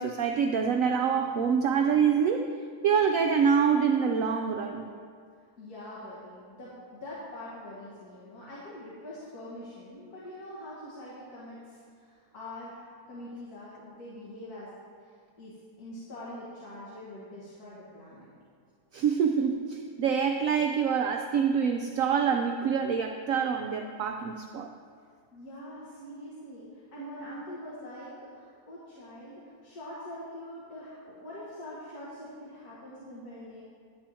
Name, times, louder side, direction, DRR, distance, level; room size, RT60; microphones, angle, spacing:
voice 1, 0.0-2.5 2.8-4.9 18.9-24.7, right 6 dB, 70° right, 4 dB, 0.8 m, -26 dB
voice 2, 5.6-14.7 15.4-18.3 25.3-33.6, left 1 dB, 65° left, -8 dB, 2.0 m, -44 dB
10.5 x 4.4 x 7.5 m, 2.1 s
omnidirectional pair, 1.7 m